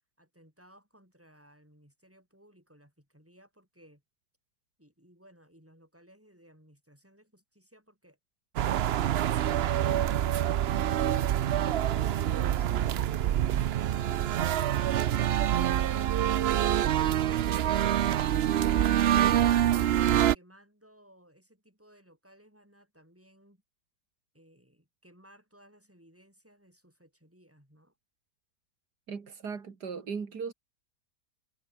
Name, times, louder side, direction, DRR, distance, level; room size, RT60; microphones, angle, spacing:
voice 1, 0.2-4.0 4.8-8.2 19.5-23.6 24.3-28.0, equal, 10° right, 8.1 m, -59 dB
sound 1, 8.6-20.4, right 11 dB, 70° right, 0.6 m, -26 dB
voice 2, 29.1-30.5, right 5 dB, 85° right, 2.8 m, -37 dB
omnidirectional pair, 1.7 m